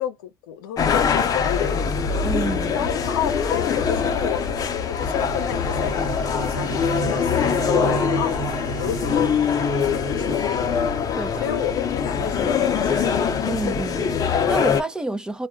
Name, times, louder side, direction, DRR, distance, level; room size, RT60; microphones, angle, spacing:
voice 1, 0.0-1.8 2.7-9.3 9.9-10.6 11.4-13.0, left 9 dB, 85° left, 0.7 m, -30 dB
sound 1, 0.8-14.8, left 6 dB, 35° left, 0.7 m, -23 dB
voice 2, 2.2-2.9 11.2-11.5 13.4-15.5, right 2 dB, 5° right, 0.5 m, -29 dB
sound 2, 4.8-13.1, right 13 dB, 65° right, 0.5 m, -35 dB
2.4 x 2.1 x 3.6 m
supercardioid pair, 115°, 11 cm